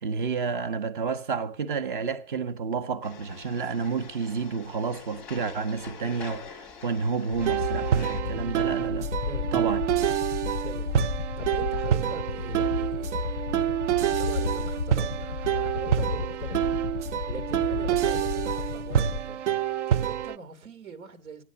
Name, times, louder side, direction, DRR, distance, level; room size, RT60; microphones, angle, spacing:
voice 1, 0.0-9.1 9.5-9.8, right 5 dB, 35° right, 1.1 m, -30 dB
sound 1, 3.0-8.2, left 5 dB, 5° left, 1.0 m, -45 dB
sound 2, 7.4-19.2, left 6 dB, 20° left, 0.7 m, -33 dB
sound 3, 7.4-20.4, right 11 dB, 60° right, 0.6 m, -27 dB
voice 2, 10.6-21.4, right 3 dB, 85° right, 3.0 m, -42 dB
15.5 x 9.8 x 6.9 m
hypercardioid pair, 180°, 41 cm